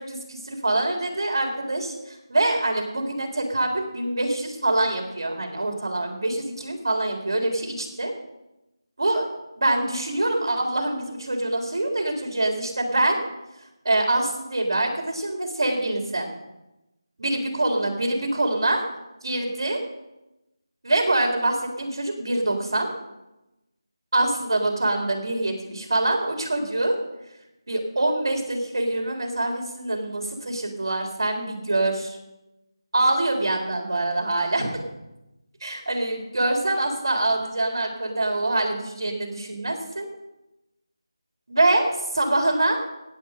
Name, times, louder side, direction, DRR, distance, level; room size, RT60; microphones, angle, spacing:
voice 1, 0.0-8.1 9.0-9.3 9.6-13.2 13.8-16.3 17.2-18.8 19.2-19.8 20.8-22.9 24.1-27.0 27.7-32.2 32.9-34.7 35.6-40.1 41.5-41.9 42.1-42.9, right 2 dB, 60° right, 2 dB, 3.9 m, -25 dB
17.0 x 8.9 x 5.3 m, 0.96 s
figure-of-eight pair, 175°, 2 cm